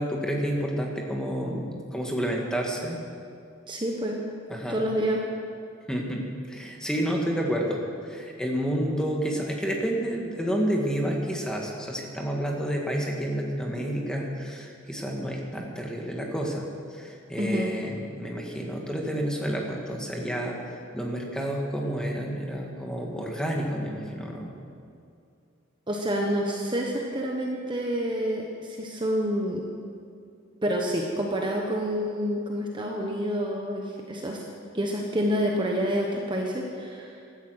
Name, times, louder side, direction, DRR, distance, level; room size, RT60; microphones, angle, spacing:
voice 1, 0.0-3.0 4.5-4.8 5.9-16.7 16.9-20.6 20.9-24.5, equal, 5° left, 0 dB, 1.9 m, -30 dB
voice 2, 3.7-4.2 4.7-5.2 17.4-17.7 25.9-29.6 30.6-34.4 34.7-37.2, equal, 25° right, 0 dB, 1.1 m, -28 dB
16.0 x 13.0 x 6.4 m, 2.4 s
head